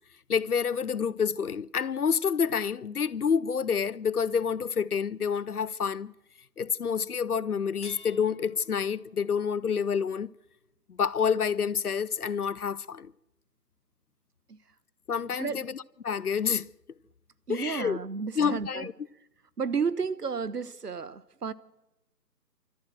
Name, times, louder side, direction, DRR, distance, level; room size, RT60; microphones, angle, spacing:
voice 1, 0.3-6.1 6.6-10.3 10.9-13.1 15.1-16.7 17.5-18.0 18.4-18.9, left 6 dB, 60° left, 0.7 m, -28 dB
sound 1, 7.7-10.9 12.5-12.6 13.4-13.5, left 3 dB, 30° left, 1.1 m, -53 dB
voice 2, 17.5-18.9 19.6-21.5, right 5 dB, 65° right, 1.1 m, -32 dB
26.5 x 14.0 x 7.7 m
figure-of-eight pair, 155°, 50 cm